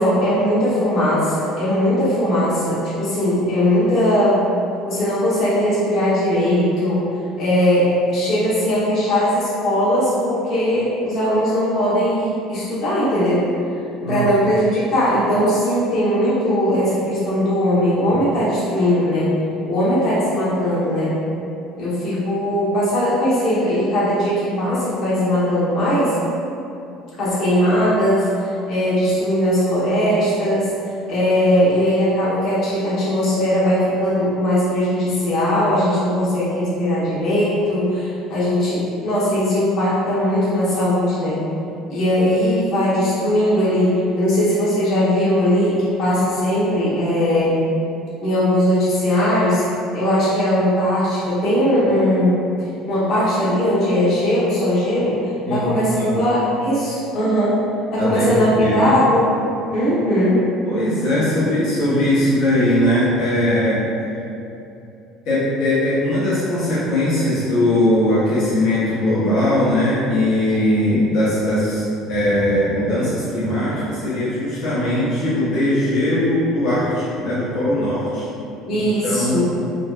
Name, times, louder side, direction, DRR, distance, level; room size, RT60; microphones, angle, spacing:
voice 1, 0.0-4.4 4.9-7.1 7.4-13.5 14.1-19.3 19.7-21.1 21.8-26.1 27.2-30.7 31.1-41.4 41.9-47.6 48.2-49.7 49.9-52.4 52.9-55.2 55.5-57.6 57.9-59.2 59.7-60.4 78.7-79.5, equal, 45° left, -11 dB, 1.2 m, -19 dB
voice 2, 14.0-14.5 45.3-45.5 55.5-55.7 56.0-56.2 58.0-58.9 60.6-63.8 65.2-71.8 72.1-78.3 79.0-79.5, left 1 dB, 75° left, -11 dB, 0.9 m, -20 dB
3.9 x 2.2 x 2.4 m, 2.7 s
cardioid pair, 145°, 0 cm